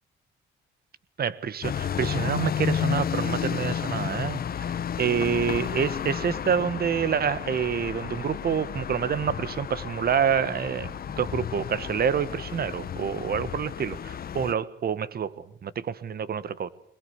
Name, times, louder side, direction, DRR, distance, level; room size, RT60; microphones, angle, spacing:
voice 1, 1.2-16.7, right 7 dB, 50° right, 16 dB, 1.5 m, -27 dB
sound 1, 1.6-14.5, left 8 dB, 50° left, 1.0 m, -32 dB
23.0 x 21.5 x 8.3 m, 0.66 s
cardioid pair, 90°, 20 cm